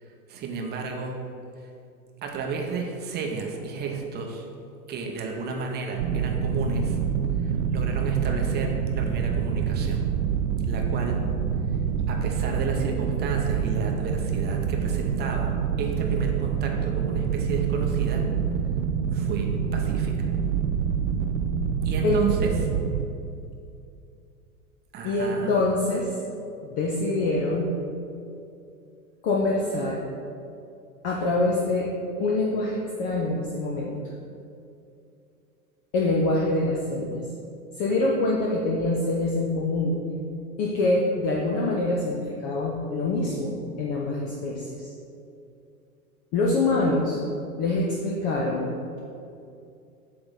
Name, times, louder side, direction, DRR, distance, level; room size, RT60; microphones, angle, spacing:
voice 1, 0.3-1.2 2.2-4.5 4.9-7.0 7.4-10.0 10.6-11.2 12.1-18.3 19.1-20.3 21.8-22.5 24.9-25.5, right 5 dB, 20° right, 1 dB, 0.7 m, -32 dB
sound 1, 6.0-23.1, right 7 dB, 55° right, 0.5 m, -26 dB
voice 2, 25.0-26.1 26.7-27.7 29.2-30.0 31.0-31.9 32.2-34.0 35.9-37.2 37.8-40.0 40.6-44.9 46.3-47.2 47.6-48.7, left 2 dB, 20° left, -2 dB, 0.3 m, -25 dB
7.4 x 2.9 x 5.5 m, 2.6 s
figure-of-eight pair, 90°, 44 cm